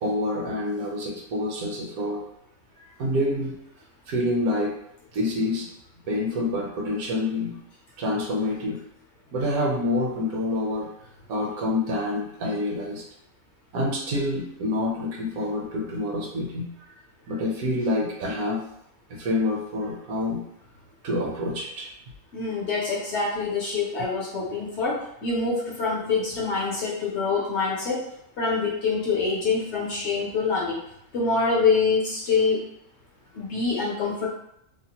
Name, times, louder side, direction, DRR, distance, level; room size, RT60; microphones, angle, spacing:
voice 1, 0.0-2.2 2.8-3.6 4.1-4.7 5.1-5.7 6.1-7.6 8.0-8.8 9.3-10.9 11.3-13.0 13.7-16.7 17.3-18.6 19.1-20.4 21.0-21.9, left 1 dB, 75° right, -1 dB, 1.1 m, -27 dB
voice 2, 22.3-28.0 28.4-30.8 31.1-32.6 33.3-34.3, left 4 dB, 60° left, -4 dB, 0.8 m, -25 dB
2.8 x 2.1 x 2.8 m, 0.76 s
omnidirectional pair, 1.6 m